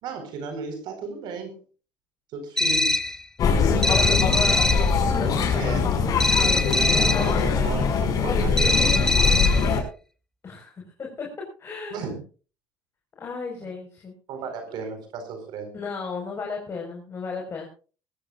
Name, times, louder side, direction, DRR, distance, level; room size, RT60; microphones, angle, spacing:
voice 1, 0.0-1.5 2.3-2.9 5.5-5.8 6.5-9.2 11.9-12.2 14.3-15.7, right 5 dB, 65° right, 6 dB, 4.6 m, -35 dB
sound 1, 2.6-3.2 3.8-4.9 6.2-7.3 8.6-9.7, left 2 dB, 5° left, 0.9 m, -22 dB
sound 2, 3.4-9.8, left 5 dB, 50° left, 5.8 m, -22 dB
voice 2, 3.4-4.7 5.0-5.7 10.4-11.3 11.6-12.0 13.2-14.1 15.7-17.7, left 5 dB, 30° left, 0 dB, 5.0 m, -34 dB
21.0 x 15.0 x 2.5 m, 0.36 s
cardioid pair, 115°, 8 cm